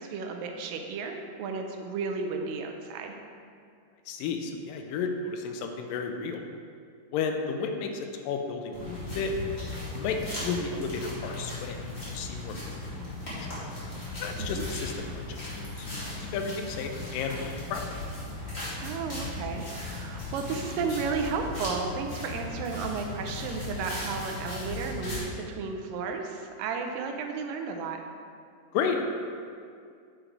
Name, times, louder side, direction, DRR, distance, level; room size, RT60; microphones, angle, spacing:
voice 1, 0.0-3.2 14.4-14.6 18.8-28.0, right 5 dB, 80° right, 3 dB, 2.3 m, -33 dB
voice 2, 4.1-6.4 7.1-9.3 9.9-11.8 12.1-13.0 13.3-13.5 14.2-16.0 16.3-18.0 28.7-29.0, left 5 dB, 85° left, 4 dB, 2.3 m, -33 dB
sound 1, 8.7-25.2, left 2 dB, 25° left, 1.8 m, -37 dB
8.9 x 5.1 x 4.6 m, 2.3 s
omnidirectional pair, 4.0 m